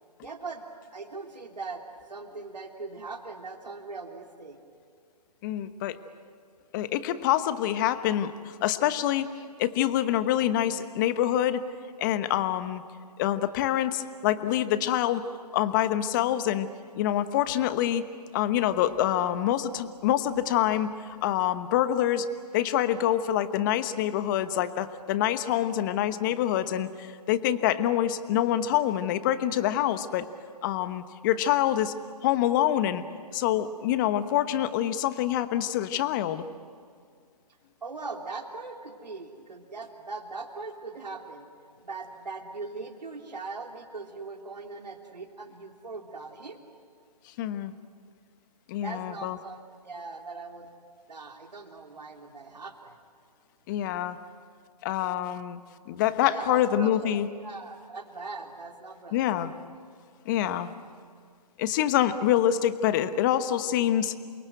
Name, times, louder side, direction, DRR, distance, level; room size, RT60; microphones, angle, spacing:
voice 1, 0.2-0.6 0.9-4.6 37.8-41.5 41.8-46.6 48.8-50.7 51.1-53.0 56.3-59.5, right 3 dB, 80° right, 3 dB, 3.3 m, -40 dB
voice 2, 5.4-6.0 6.7-9.3 9.6-11.6 12.0-12.8 13.2-15.2 15.5-16.7 17.0-18.1 18.3-20.9 21.2-22.3 22.5-30.3 30.6-31.9 32.2-33.0 33.3-36.4 47.4-47.7 48.7-49.4 53.7-54.2 54.8-57.3 59.1-59.5 60.2-60.7 61.6-64.2, left 11 dB, 30° left, 12 dB, 1.1 m, -26 dB
29.0 x 23.5 x 8.0 m, 2.2 s
figure-of-eight pair, 140°, 21 cm